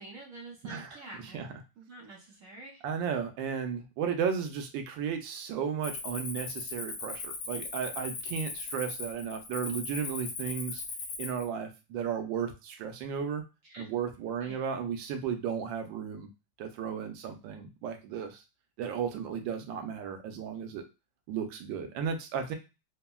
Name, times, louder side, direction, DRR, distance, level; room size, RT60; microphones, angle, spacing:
voice 1, 0.0-2.8 13.6-13.9 14.4-14.6, right 2 dB, 60° right, -1 dB, 0.9 m, -48 dB
voice 2, 0.6-1.0 1.3-1.5 2.8-10.8 11.2-13.4 13.8-16.3 16.6-18.4 18.8-20.8 21.3-22.5, right 7 dB, 80° right, 6 dB, 1.3 m, -34 dB
Cricket, 5.8-11.4, left 4 dB, 80° left, 1.5 m, -38 dB
3.6 x 2.0 x 2.2 m, 0.28 s
omnidirectional pair, 2.0 m